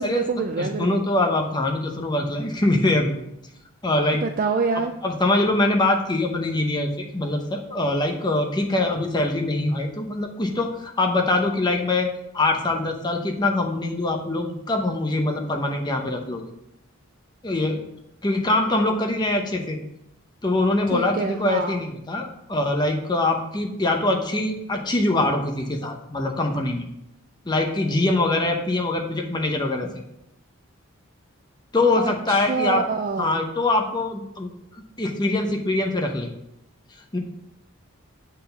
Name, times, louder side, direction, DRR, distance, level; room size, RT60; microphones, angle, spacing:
voice 1, 0.0-1.0 4.2-4.9 20.9-21.8 32.0-33.5, right 4 dB, 40° right, 6 dB, 0.4 m, -26 dB
voice 2, 0.6-3.2 3.8-4.2 5.0-12.1 12.3-16.4 17.4-17.8 18.2-19.8 20.4-26.9 27.5-30.0 31.7-32.8 33.2-34.5 35.0-36.3 37.1-37.2, left 2 dB, 20° left, 2 dB, 0.8 m, -23 dB
7.4 x 4.5 x 5.3 m, 0.81 s
head